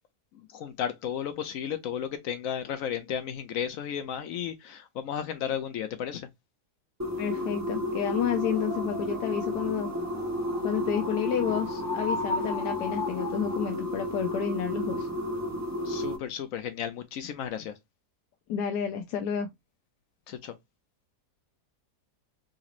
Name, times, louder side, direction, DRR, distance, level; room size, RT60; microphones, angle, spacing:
voice 1, 0.3-6.3 15.8-17.7 20.3-20.5, left 8 dB, 70° left, 0.8 m, -34 dB
sound 1, 7.0-16.2, left 1 dB, 15° right, 0.6 m, -32 dB
voice 2, 7.2-9.9 10.6-15.1 18.5-19.5, left 8 dB, 90° left, 1.2 m, -30 dB
sound 2, 8.0-13.7, left 3 dB, 35° left, 1.2 m, -37 dB
3.8 x 3.0 x 2.4 m
omnidirectional pair, 1.7 m